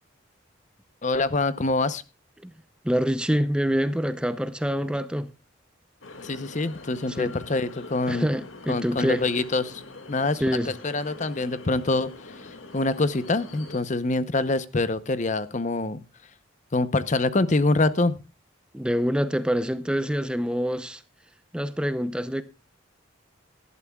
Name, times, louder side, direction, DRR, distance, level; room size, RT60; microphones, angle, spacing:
voice 1, 1.0-2.0 6.2-8.3 8.7-9.8 10.1-16.0 16.7-18.2, left 2 dB, 35° left, 0.8 m, -25 dB
voice 2, 2.8-5.3 7.2-7.4 8.1-9.2 10.4-10.7 18.7-21.0 21.5-22.4, equal, 5° right, 0.6 m, -26 dB
sound 1, 6.0-13.8, left 3 dB, 75° left, 2.2 m, -44 dB
18.5 x 12.0 x 2.3 m
head